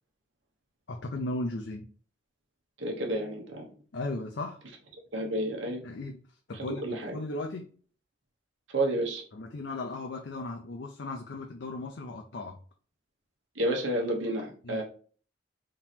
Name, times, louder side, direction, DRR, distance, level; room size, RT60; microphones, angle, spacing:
voice 1, 0.9-1.9 3.9-4.6 5.8-6.2 6.5-7.7 9.3-12.6 14.6-14.8, left 2 dB, 70° left, 2 dB, 0.6 m, -36 dB
voice 2, 2.8-3.7 5.1-5.8 6.8-7.2 8.7-9.2 13.6-14.8, right 1 dB, 80° right, 1 dB, 1.2 m, -30 dB
3.7 x 2.9 x 4.3 m, 0.42 s
head